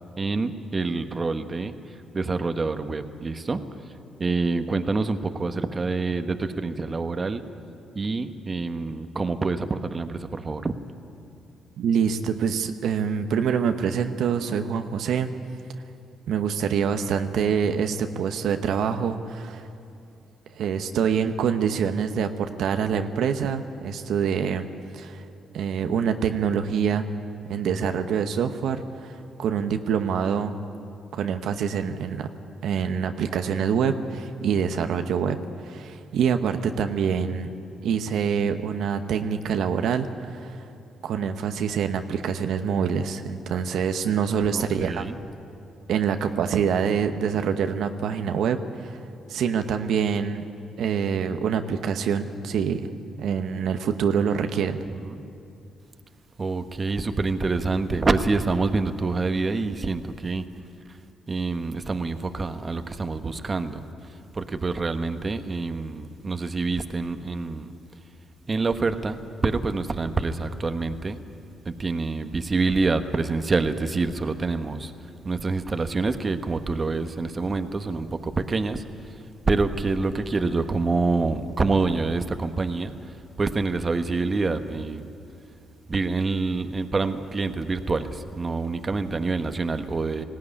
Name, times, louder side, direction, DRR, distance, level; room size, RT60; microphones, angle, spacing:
voice 1, 0.2-1.7 2.1-3.8 4.2-7.4 7.9-10.8 44.5-45.2 55.0-55.3 56.4-60.5 61.3-63.9 64.3-67.8 68.5-71.2 71.6-75.0 75.2-85.1 85.9-90.2, right 3 dB, 30° right, 8 dB, 1.1 m, -26 dB
voice 2, 11.8-15.3 16.3-19.7 20.5-24.7 24.9-25.3 25.5-27.1 27.5-30.5 31.1-32.3 32.6-37.5 37.8-40.6 41.0-45.0 45.9-49.0 49.3-50.4 50.8-52.9 53.2-54.8, right 7 dB, 75° right, 7 dB, 0.9 m, -25 dB
19.0 x 16.5 x 9.8 m, 2.6 s
cardioid pair, 90°, 0 cm